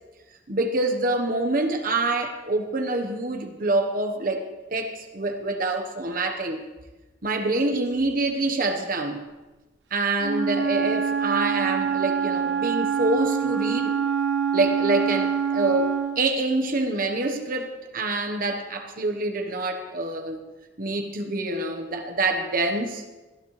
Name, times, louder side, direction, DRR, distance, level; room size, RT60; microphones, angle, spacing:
voice 1, 0.5-4.4 4.7-6.6 7.2-9.2 9.9-14.0 14.5-20.4 20.8-23.0, right 2 dB, 50° right, 5 dB, 1.2 m, -26 dB
Wind instrument woodwind instrument, 10.2-16.2, right 7 dB, 75° right, 1.0 m, -25 dB
19.0 x 12.5 x 3.3 m, 1.2 s
head